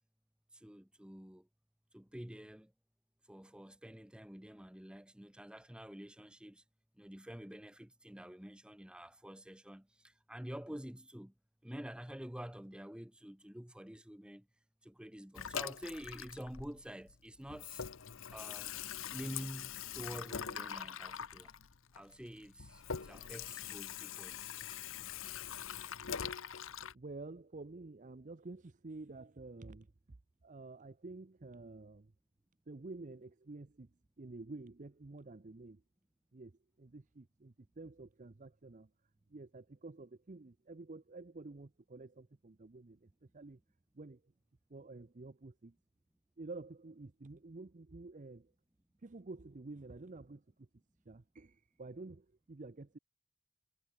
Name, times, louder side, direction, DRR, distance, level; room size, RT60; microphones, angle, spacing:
voice 1, 0.5-1.5 1.9-2.7 3.3-6.6 7.0-11.3 11.6-14.5 14.8-17.9 18.3-18.8 19.1-21.5 21.9-24.4, equal, 5° right, 0.8 m, -48 dB
Water tap faucet / Sink (filling or washing), 15.4-17.2 17.4-26.9, left 8 dB, 65° left, 0.9 m, -43 dB
voice 2, 26.9-29.9 30.4-32.1 32.7-33.9 34.2-35.8 36.3-38.9 39.3-43.6 43.9-44.2 44.7-45.8 46.4-48.5 49.0-50.7 51.1-53.0, right 3 dB, 35° right, 0.6 m, -50 dB
head